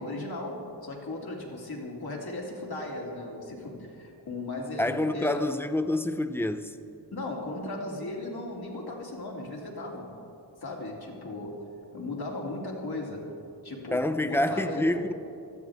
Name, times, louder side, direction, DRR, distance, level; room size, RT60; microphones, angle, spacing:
voice 1, 0.0-5.5 7.1-10.2 10.6-11.6 11.9-13.3 13.6-14.9, left 2 dB, 60° left, -2 dB, 3.1 m, -36 dB
voice 2, 4.8-6.8 13.9-15.1, left 1 dB, 5° left, 10 dB, 0.7 m, -27 dB
20.0 x 13.5 x 3.6 m, 2.5 s
cardioid pair, 70°, 43 cm